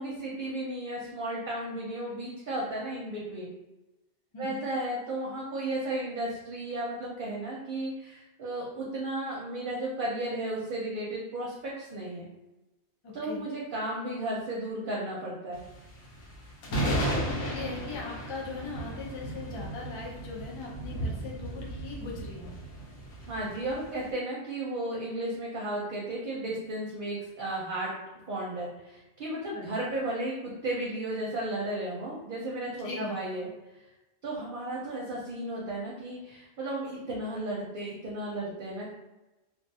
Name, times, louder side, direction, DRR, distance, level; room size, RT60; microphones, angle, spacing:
voice 1, 0.0-3.5 4.4-12.3 13.1-15.6 16.9-17.2 23.3-27.9 28.3-33.5 34.2-38.9, right 1 dB, 55° right, -4 dB, 0.6 m, -34 dB
voice 2, 4.3-4.7 13.0-13.5 16.7-22.6 29.5-29.7 32.6-33.2, left 4 dB, 50° left, -2 dB, 0.3 m, -40 dB
sound 1, 15.5-24.1, right 1 dB, 85° left, 1.0 m, -35 dB
2.4 x 2.3 x 2.6 m, 1.0 s
omnidirectional pair, 1.2 m